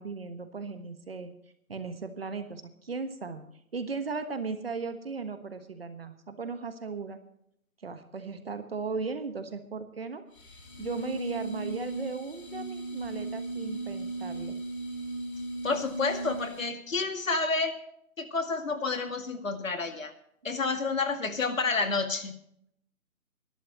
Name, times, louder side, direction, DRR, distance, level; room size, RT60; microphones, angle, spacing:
voice 1, 0.0-1.3 1.7-3.4 3.7-7.2 7.8-10.2 10.8-14.6, right 4 dB, 40° right, 9 dB, 1.3 m, -37 dB
sound 1, 10.3-16.8, right 2 dB, 35° left, 3.5 m, -37 dB
voice 2, 15.6-17.8 18.2-20.1 20.4-22.4, left 4 dB, 65° left, 6 dB, 2.2 m, -29 dB
22.0 x 12.0 x 3.0 m, 0.72 s
figure-of-eight pair, 165°, 44 cm